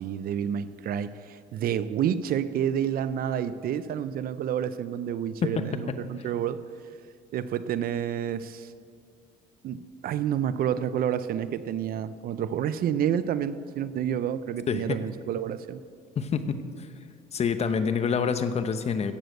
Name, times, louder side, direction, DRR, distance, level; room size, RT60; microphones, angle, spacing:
voice 1, 0.0-6.6 7.3-8.7 9.6-15.8, right 9 dB, 60° right, 14 dB, 0.6 m, -29 dB
voice 2, 5.4-5.9 14.7-15.0 16.2-16.6 17.3-19.1, left 6 dB, 40° left, 10 dB, 0.9 m, -27 dB
16.0 x 6.9 x 7.8 m, 2.1 s
cardioid pair, 110°, 17 cm